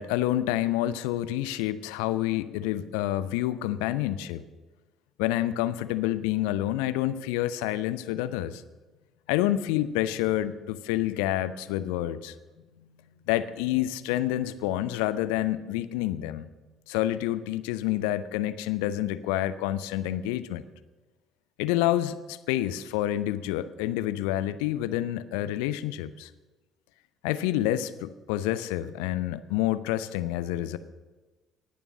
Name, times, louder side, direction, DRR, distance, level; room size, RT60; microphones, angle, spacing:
voice 1, 0.0-4.4 5.2-8.6 9.3-12.3 13.3-16.5 16.9-20.6 21.6-26.3 27.2-30.8, left 13 dB, 70° left, 14 dB, 0.5 m, -28 dB
19.0 x 7.0 x 6.1 m, 1.2 s
figure-of-eight pair, 50°, 0 cm